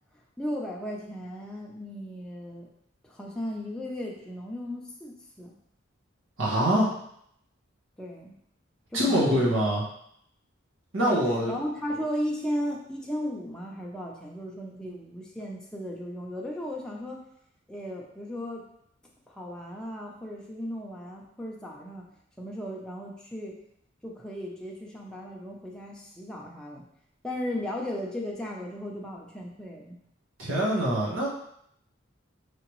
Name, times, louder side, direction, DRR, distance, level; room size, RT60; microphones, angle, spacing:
voice 1, 0.4-2.7 3.0-5.5 8.0-8.4 8.9-9.5 11.0-17.2 17.7-18.6 19.3-22.1 22.4-23.6 24.0-26.9 27.2-30.0, equal, 5° left, -3 dB, 0.6 m, -36 dB
voice 2, 6.4-6.9 8.9-9.8 10.9-11.5 30.4-31.3, equal, 85° right, -4 dB, 1.5 m, -24 dB
4.9 x 3.4 x 3.1 m, 0.72 s
head